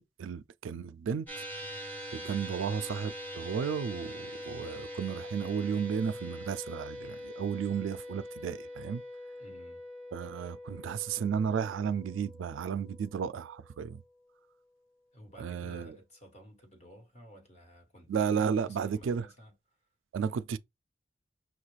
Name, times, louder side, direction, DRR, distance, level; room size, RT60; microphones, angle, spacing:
voice 1, 0.0-1.4 2.1-9.0 10.1-14.0 15.4-16.0 18.1-19.3 20.1-20.6, right 7 dB, 85° right, 0.3 m, -33 dB
sound 1, 1.3-13.8, equal, 10° left, 1.2 m, -43 dB
voice 2, 9.4-9.8 15.1-19.5, equal, 35° left, 1.3 m, -53 dB
6.0 x 2.4 x 3.1 m
head